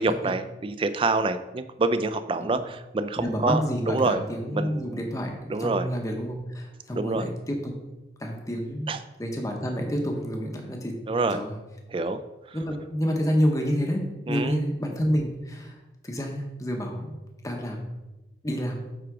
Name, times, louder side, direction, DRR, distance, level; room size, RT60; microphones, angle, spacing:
voice 1, 0.0-4.2 4.5-5.0 5.5-5.9 6.9-7.3 8.9-9.0 11.1-11.4 11.9-12.2 12.5-12.6 14.3-14.6, right 3 dB, 30° right, 11 dB, 0.3 m, -27 dB
voice 2, 3.2-7.7 8.2-8.9 9.2-10.9 11.3-11.5 12.5-15.8 16.0-17.2 17.4-17.8 18.4-18.8, equal, 20° left, 2 dB, 0.7 m, -28 dB
8.1 x 3.5 x 4.8 m, 1.1 s
head